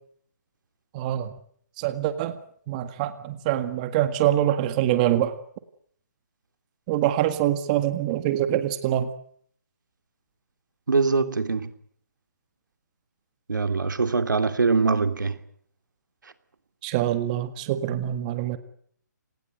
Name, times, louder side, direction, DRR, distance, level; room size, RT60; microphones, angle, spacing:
voice 1, 0.9-1.3 1.8-2.4 2.7-5.3 6.9-9.1 16.8-18.6, right 12 dB, 25° right, 1.8 m, -24 dB
voice 2, 10.9-11.7 13.5-15.4, right 4 dB, 85° right, 2.8 m, -23 dB
29.0 x 19.5 x 7.9 m
hypercardioid pair, 160°, 10 cm